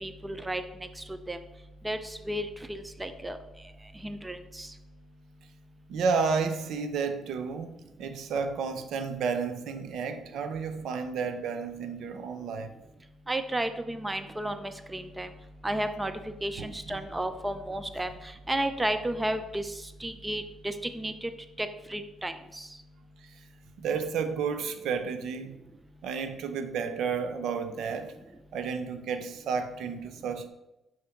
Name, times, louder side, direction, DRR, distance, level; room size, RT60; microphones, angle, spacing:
voice 1, 0.0-0.6 1.1-1.4 1.8-3.4 4.0-4.7 13.3-15.3 15.6-16.1 16.4-18.1 18.5-19.7 20.0-21.3 21.6-22.7, right 1 dB, 15° right, 0.6 m, -32 dB
voice 2, 5.9-12.7 16.6-17.0 23.2-23.4 23.8-25.6 26.0-28.2 28.5-30.5, right 5 dB, 75° right, 0.6 m, -32 dB
6.4 x 3.5 x 5.8 m
cardioid pair, 90°, 0 cm